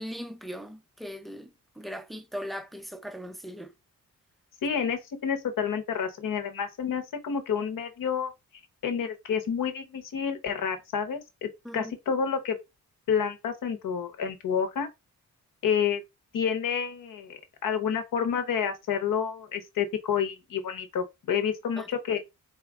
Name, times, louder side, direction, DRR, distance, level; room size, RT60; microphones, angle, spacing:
voice 1, 0.0-3.7 11.6-11.9 21.8-21.9, equal, ahead, 0.3 m, -39 dB
voice 2, 4.6-8.3 8.8-12.6 13.1-14.9 15.6-16.0 16.3-22.2, left 7 dB, 80° left, 1.0 m, -29 dB
4.4 x 2.4 x 3.5 m
wide cardioid pair, 140°, 33 cm